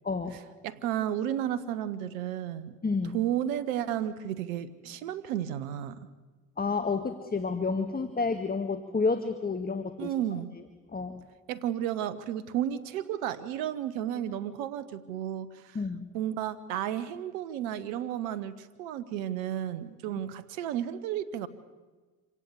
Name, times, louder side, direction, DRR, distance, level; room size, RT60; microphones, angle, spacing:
voice 1, 0.0-0.4 2.8-3.2 6.6-10.1 10.9-11.2 15.7-16.1, left 4 dB, 25° left, 9 dB, 1.7 m, -30 dB
voice 2, 0.6-2.8 3.1-6.1 10.0-10.5 11.5-15.8 16.1-21.5, right 11 dB, 80° right, 14 dB, 1.3 m, -32 dB
26.5 x 17.5 x 8.3 m, 1.3 s
hypercardioid pair, 60°, 39 cm